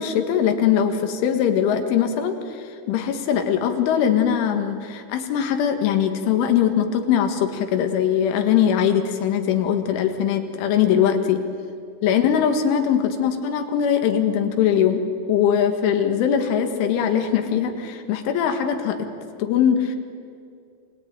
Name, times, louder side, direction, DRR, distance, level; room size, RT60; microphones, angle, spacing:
voice 1, 0.0-11.4 12.0-15.0 15.3-19.0 19.4-20.0, left 8 dB, 90° left, 6 dB, 4.2 m, -21 dB
28.0 x 19.0 x 9.5 m, 2.3 s
omnidirectional pair, 5.4 m